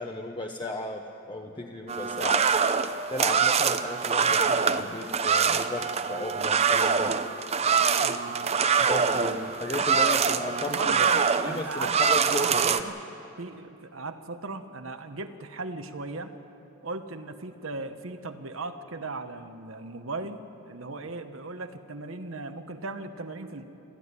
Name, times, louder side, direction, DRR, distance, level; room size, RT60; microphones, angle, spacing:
voice 1, 0.0-2.5 3.1-7.2 8.7-11.1 11.4-12.9, left 1 dB, 20° left, 2 dB, 1.0 m, -35 dB
sound 1, 1.9-12.8, right 6 dB, 30° right, 0.7 m, -24 dB
voice 2, 8.0-8.6 10.7-12.0 12.2-13.0 13.4-16.3 16.8-23.6, right 3 dB, 70° right, 8 dB, 1.1 m, -37 dB
26.0 x 14.0 x 9.8 m, 2.9 s
head